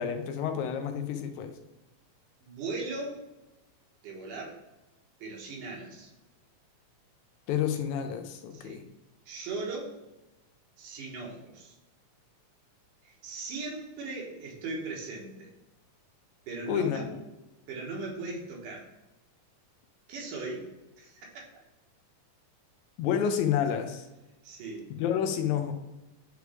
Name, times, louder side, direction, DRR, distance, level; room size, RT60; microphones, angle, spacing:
voice 1, 0.0-1.5 7.5-8.8 16.7-17.2 23.0-24.1 24.9-25.7, left 8 dB, 75° left, 6 dB, 1.9 m, -29 dB
voice 2, 2.4-3.3 4.0-4.6 5.2-6.1 8.5-8.8 9.3-10.0 10.8-11.7 13.0-15.5 16.5-17.1 17.7-18.9 20.1-20.7 21.0-21.5 24.4-24.9, right 3 dB, 90° right, -2 dB, 2.9 m, -38 dB
9.3 x 3.2 x 3.3 m, 1.0 s
omnidirectional pair, 3.6 m